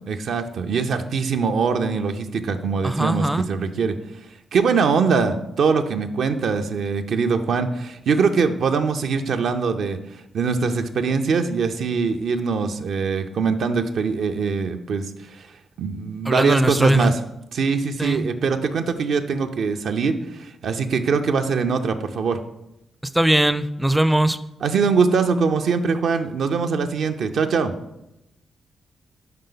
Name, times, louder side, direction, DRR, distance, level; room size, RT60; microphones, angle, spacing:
voice 1, 0.1-4.0 4.5-10.0 10.3-15.5 15.8-17.2 17.5-22.4 24.6-27.7, right 5 dB, 70° right, 6 dB, 0.4 m, -22 dB
voice 2, 2.8-3.4 16.2-17.1 18.0-18.3 23.1-24.4, right 1 dB, 5° right, 13 dB, 0.4 m, -20 dB
5.5 x 4.9 x 3.9 m, 0.87 s
supercardioid pair, 55°, 0 cm